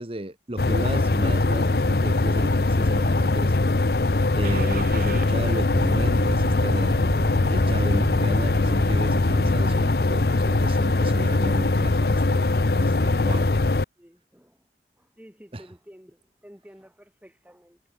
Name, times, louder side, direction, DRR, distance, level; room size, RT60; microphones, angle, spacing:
voice 1, 0.0-3.5 4.3-7.0 7.5-12.5 12.7-13.5 15.5-15.6, right 1 dB, 30° right, 1.2 m, -34 dB
sound 1, 0.6-13.8, left 2 dB, 60° left, 0.8 m, -21 dB
Car / Engine starting, 4.4-9.9, right 1 dB, 50° right, 2.9 m, -32 dB
voice 2, 14.0-14.7 15.0-17.8, equal, 10° right, 3.6 m, -51 dB
head